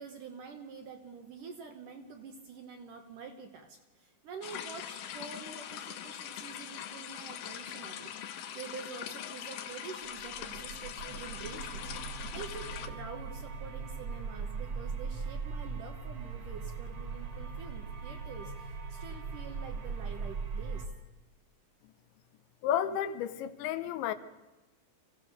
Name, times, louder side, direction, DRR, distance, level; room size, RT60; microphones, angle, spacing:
voice 1, 0.0-20.9, right 5 dB, 65° right, 2.2 m, -47 dB
sound 1, 4.4-12.9, left 10 dB, 70° left, 2.2 m, -42 dB
sound 2, 10.2-20.9, right 5 dB, 45° right, 2.8 m, -40 dB
voice 2, 22.6-24.1, left 10 dB, 85° left, 3.3 m, -31 dB
25.0 x 16.5 x 6.7 m
omnidirectional pair, 5.1 m